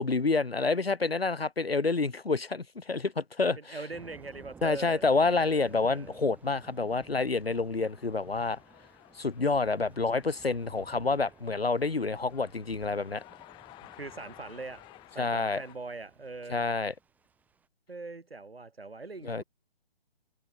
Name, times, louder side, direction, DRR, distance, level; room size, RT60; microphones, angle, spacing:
voice 1, 0.0-3.8 4.6-8.6 9.2-13.2 15.2-15.6 16.5-16.9 19.2-19.4, left 3 dB, 75° left, 2.6 m, -28 dB
voice 2, 3.6-6.2 13.8-14.8 15.1-16.7 17.9-19.4, right 3 dB, 75° right, 5.0 m, -42 dB
Thunder / Rain, 3.9-17.7, right 5 dB, 5° right, 2.3 m, -57 dB
sound 1, 5.1-15.8, left 20 dB, 15° left, 3.1 m, -56 dB
figure-of-eight pair, 145°, 30 cm